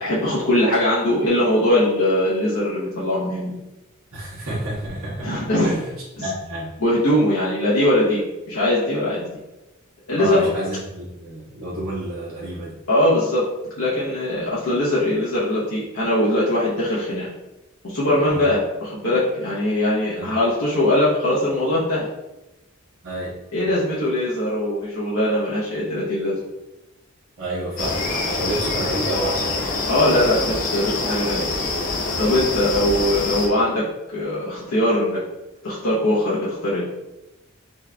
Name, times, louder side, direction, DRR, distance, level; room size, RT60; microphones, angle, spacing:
voice 1, 0.0-3.6 5.2-5.7 6.8-9.3 10.1-10.4 12.9-13.4 13.8-17.3 17.8-22.1 23.5-26.4 29.9-31.5 32.2-35.2 35.6-36.9, left 1 dB, 85° left, -8 dB, 0.9 m, -21 dB
voice 2, 4.1-5.9 6.2-6.7 10.2-12.8 18.3-18.5 20.1-20.3 23.0-23.3 27.4-29.6, right 1 dB, 85° right, -9 dB, 1.3 m, -29 dB
sound 1, 27.8-33.5, left 3 dB, 40° left, 0.5 m, -25 dB
4.5 x 2.9 x 2.3 m, 0.96 s
head